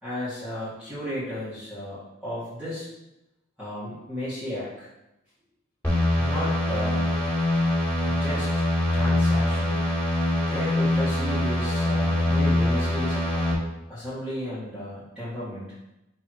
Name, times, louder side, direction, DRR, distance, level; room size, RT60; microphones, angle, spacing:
voice 1, 0.0-2.9 3.6-4.9 6.2-7.1 8.1-8.6 8.9-9.8 10.5-13.5 13.9-15.7, left 1 dB, 5° right, -13 dB, 1.9 m, -34 dB
sound 1, 5.8-13.5, left 1 dB, 10° left, 2.4 m, -24 dB
5.4 x 4.6 x 4.7 m, 0.92 s
head